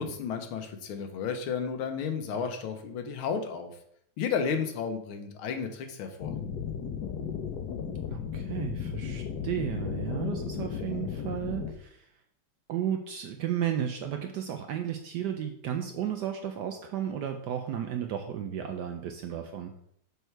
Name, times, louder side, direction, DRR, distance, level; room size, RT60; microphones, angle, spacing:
voice 1, 0.0-3.7 4.2-6.4, left 6 dB, 85° left, 6 dB, 1.7 m, -32 dB
sound 1, 6.2-11.7, left 7 dB, 65° left, 1.1 m, -35 dB
voice 2, 8.0-12.1 12.7-19.7, right 9 dB, 75° right, 5 dB, 1.0 m, -33 dB
6.7 x 4.6 x 4.5 m, 0.71 s
omnidirectional pair, 2.3 m